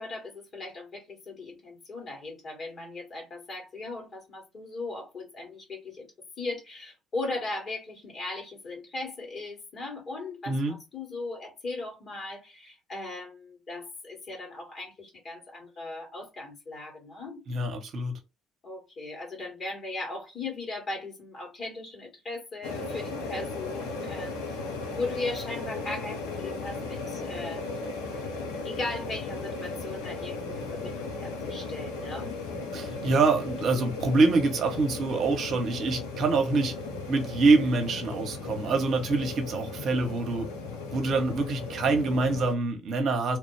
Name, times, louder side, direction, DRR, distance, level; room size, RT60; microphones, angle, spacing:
voice 1, 0.0-6.1 6.4-17.4 18.6-24.5 24.9-27.7 28.6-30.4 30.7-32.3, left 2 dB, 45° left, 2.0 m, -38 dB
voice 2, 17.5-18.2 32.7-36.7 37.1-40.5 40.9-43.4, right 3 dB, 55° right, 1.0 m, -25 dB
sound 1, 22.6-42.5, left 3 dB, 80° left, 0.9 m, -36 dB
3.2 x 2.3 x 3.3 m
hypercardioid pair, 55°, 0 cm